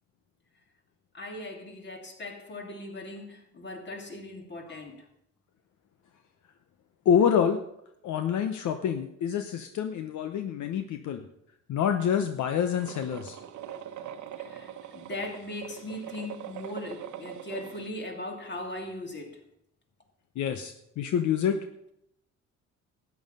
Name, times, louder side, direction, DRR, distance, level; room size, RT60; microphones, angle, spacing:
voice 1, 1.1-5.1 14.4-19.4, left 2 dB, 35° left, 2.8 m, -39 dB
voice 2, 7.1-7.6 8.0-11.2 11.7-13.4 20.4-21.6, left 8 dB, 70° left, 0.9 m, -27 dB
sound 1, 12.7-17.9, right 10 dB, 75° right, 1.1 m, -42 dB
12.5 x 9.5 x 5.4 m
cardioid pair, 90°, 30 cm